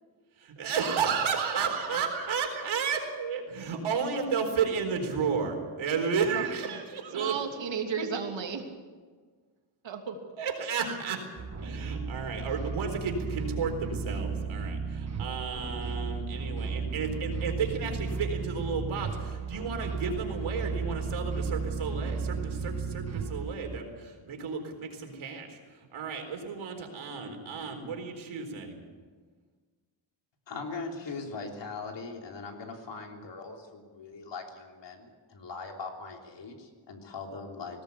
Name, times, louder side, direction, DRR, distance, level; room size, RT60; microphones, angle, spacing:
voice 1, 0.4-7.3 10.4-11.3 11.6-25.6 25.9-28.8, right 5 dB, 90° right, 3 dB, 4.3 m, -32 dB
voice 2, 6.3-6.8 7.1-8.6 9.8-10.2, right 6 dB, 65° right, 3 dB, 3.1 m, -34 dB
sound 1, 11.4-23.8, right 4 dB, 35° right, 1.9 m, -34 dB
voice 3, 30.5-37.8, left 4 dB, 65° left, 2 dB, 3.4 m, -40 dB
19.5 x 18.0 x 8.5 m, 1.5 s
wide cardioid pair, 145°, 47 cm